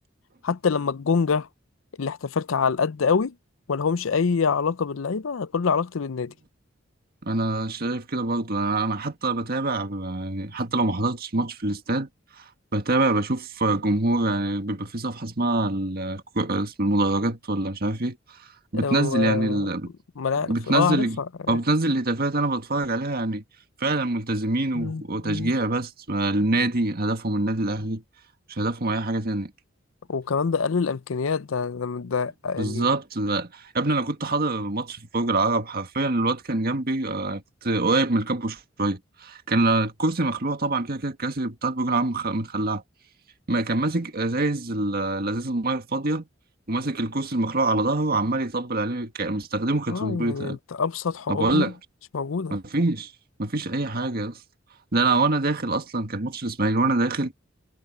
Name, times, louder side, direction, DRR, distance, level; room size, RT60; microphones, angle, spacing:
voice 1, 0.4-1.5 2.0-3.3 3.7-6.3 18.7-19.7 20.2-21.6 24.7-25.5 30.1-32.9 49.9-51.7 52.1-52.6, left 5 dB, 85° left, 0.6 m, -26 dB
voice 2, 7.2-12.1 12.4-12.5 12.7-18.2 18.7-19.9 20.5-21.2 21.5-23.4 23.8-28.0 28.5-29.5 32.6-42.8 43.5-46.3 46.7-50.6 51.3-51.7 52.5-53.1 53.4-54.4 54.9-57.3, right 2 dB, 50° right, 1.7 m, -25 dB
head